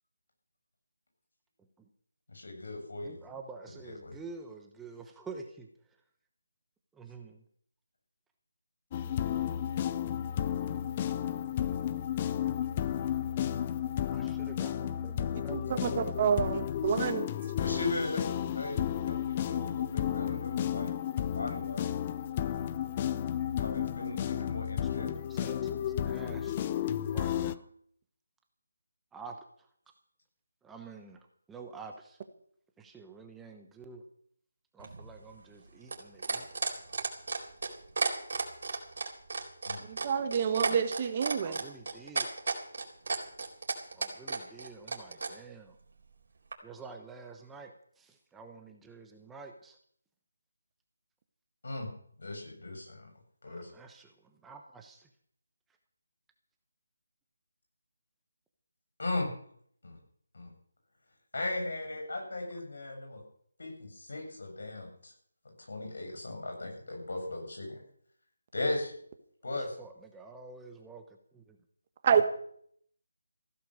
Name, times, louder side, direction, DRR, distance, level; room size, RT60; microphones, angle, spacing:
voice 1, 2.3-3.2 3.8-4.1 17.6-18.2 18.5-20.9 21.3-21.9 23.6-25.1 39.7-39.8 51.6-51.9 52.2-53.1 53.4-53.7 59.0-59.3 59.8-60.0 60.3-60.5 61.3-63.2 63.6-65.1 65.4-67.8 68.5-68.9 69.4-69.8, left 2 dB, 70° left, 3 dB, 7.5 m, -37 dB
voice 2, 3.0-5.7 6.9-7.4 14.1-16.1 24.8-26.5 27.1-27.7 29.1-29.4 30.6-32.2 32.8-34.0 34.7-36.5 41.4-42.3 43.9-45.8 46.6-49.8 53.5-55.1 69.5-71.0 71.3-71.6, right 4 dB, 5° right, 4 dB, 1.0 m, -48 dB
sound 1, 8.9-27.6, left 10 dB, 25° left, 0.6 m, -32 dB
voice 3, 15.3-15.9 16.2-17.3 39.9-41.6 72.0-72.2, right 7 dB, 30° right, 9 dB, 1.4 m, -28 dB
sound 2, 34.8-45.3 46.5-46.6, right 4 dB, 55° right, 4.2 m, -33 dB
15.5 x 12.0 x 6.6 m, 0.63 s
figure-of-eight pair, 165°, 0 cm